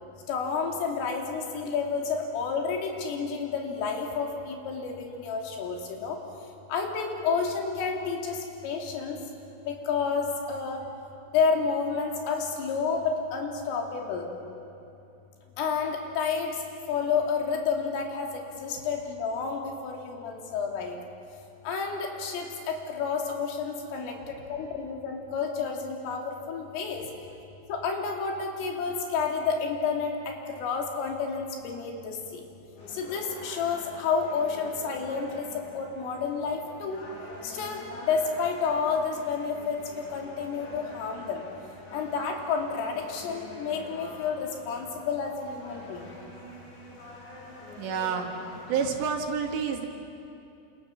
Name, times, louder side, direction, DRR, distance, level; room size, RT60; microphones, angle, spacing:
voice 1, 0.3-6.2 6.7-9.2 9.7-10.8 11.3-14.3 15.6-16.6 16.9-21.0 21.6-27.0 27.7-32.4 32.9-37.0 37.4-39.8 40.1-41.4 41.9-46.1, left 5 dB, 85° left, 1 dB, 5.4 m, -30 dB
sound 1, 32.8-48.9, left 2 dB, 65° left, 6.6 m, -46 dB
voice 2, 47.8-48.3 48.7-49.9, right 6 dB, 65° right, 2 dB, 4.1 m, -28 dB
28.0 x 27.5 x 7.3 m, 2.7 s
omnidirectional pair, 5.7 m